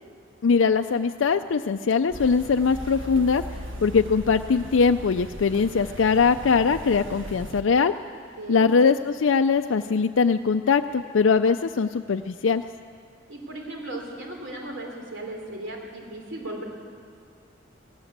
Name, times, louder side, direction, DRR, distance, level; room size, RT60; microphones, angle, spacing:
voice 1, 0.4-3.4 3.8-7.9 8.5-12.7, left 5 dB, 80° left, 7 dB, 0.5 m, -21 dB
sound 1, 2.1-7.6, equal, 85° right, 1.4 m, -38 dB
voice 2, 8.1-8.6 13.3-16.6, right 1 dB, 70° right, 1 dB, 3.6 m, -37 dB
19.0 x 18.0 x 8.0 m, 2.2 s
head